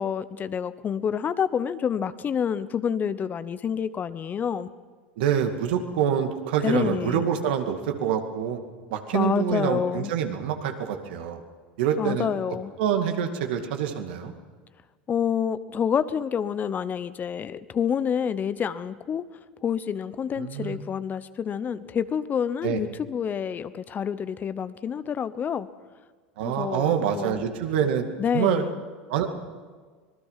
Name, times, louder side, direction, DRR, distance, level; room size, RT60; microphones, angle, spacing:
voice 1, 0.0-4.7 6.6-7.2 9.1-10.1 12.0-12.7 15.1-19.2 19.6-25.7 26.4-27.4 28.2-28.8, left 7 dB, 30° left, 15 dB, 0.9 m, -28 dB
voice 2, 5.2-8.6 8.9-11.4 11.8-14.3 20.4-20.8 22.6-22.8 26.4-28.1 28.3-28.7 29.1-29.3, right 8 dB, 70° right, 5 dB, 2.3 m, -26 dB
25.5 x 19.5 x 5.8 m, 1.5 s
hypercardioid pair, 90°, 6 cm